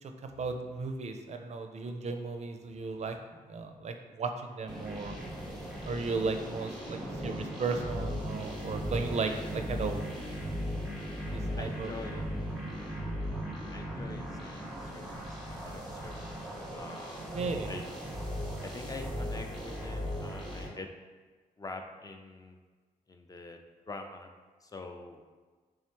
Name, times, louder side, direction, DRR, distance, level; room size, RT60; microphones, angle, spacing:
voice 1, 0.0-3.2 3.5-5.1 5.9-10.0 11.3-11.9 17.3-17.7, right 4 dB, 45° right, 6 dB, 0.4 m, -35 dB
sound 1, 4.7-20.7, equal, ahead, 1.1 m, -38 dB
voice 2, 11.6-12.2 13.7-15.2 15.5-16.3 16.7-17.3 17.7-18.0 18.6-20.9 21.6-22.6 23.1-23.6 23.9-24.3 24.6-25.2, left 3 dB, 25° left, 4 dB, 0.4 m, -45 dB
3.5 x 3.2 x 2.9 m, 1.4 s
cardioid pair, 65°, 16 cm